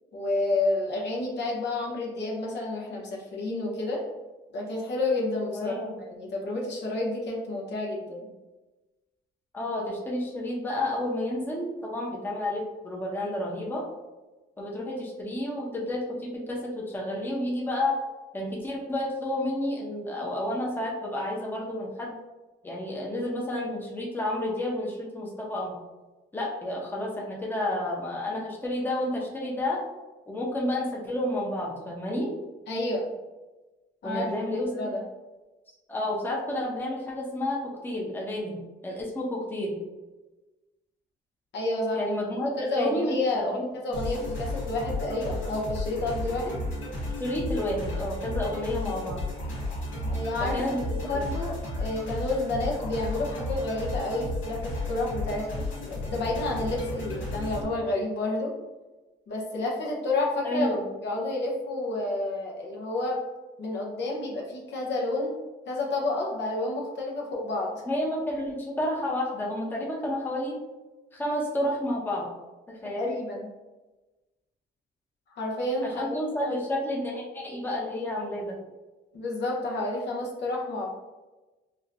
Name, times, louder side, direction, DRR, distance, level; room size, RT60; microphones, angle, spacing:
voice 1, 0.1-4.0 4.5-5.7 6.1-8.3 32.7-33.1 34.0-34.5 34.7-35.0 41.5-42.0 42.6-43.6 43.8-46.5 50.1-50.7 51.0-58.5 59.3-60.7 61.0-63.2 63.6-65.4 65.7-67.8 73.0-73.5 75.4-76.0 76.4-76.6 79.1-80.9, left 2 dB, 60° left, -2 dB, 0.8 m, -30 dB
voice 2, 5.5-6.0 9.5-13.8 14.6-18.0 18.3-22.2 22.6-25.8 26.3-29.8 30.3-32.3 34.0-34.9 35.9-39.8 41.9-43.6 47.2-49.2 50.4-50.9 51.2-51.3 60.4-60.8 67.9-70.6 71.1-72.3 72.7-73.1 75.9-78.6, left 1 dB, 10° left, -3 dB, 0.8 m, -30 dB
sound 1, 43.9-57.6, left 2 dB, 85° left, 1.4 m, -33 dB
4.4 x 2.2 x 2.5 m, 1.2 s
cardioid pair, 90°, 20 cm